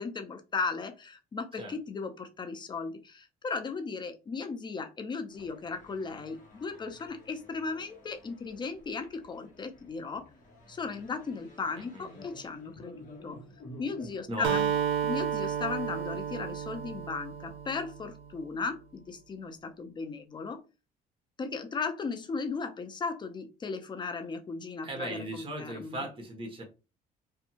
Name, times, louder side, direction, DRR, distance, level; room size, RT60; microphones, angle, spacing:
voice 1, 0.0-10.3 10.7-13.4 13.8-14.7 15.0-20.6 21.4-26.0, left 4 dB, 25° left, 6 dB, 0.5 m, -36 dB
sound 1, 5.3-14.2, left 1 dB, 50° left, 1.0 m, -52 dB
voice 2, 11.8-12.2 14.3-14.9 24.8-26.6, right 1 dB, 30° right, 2 dB, 1.1 m, -38 dB
Acoustic guitar, 14.4-18.3, right 8 dB, 90° right, 0.4 m, -32 dB
2.6 x 2.3 x 2.8 m, 0.30 s
cardioid pair, 110°, 17 cm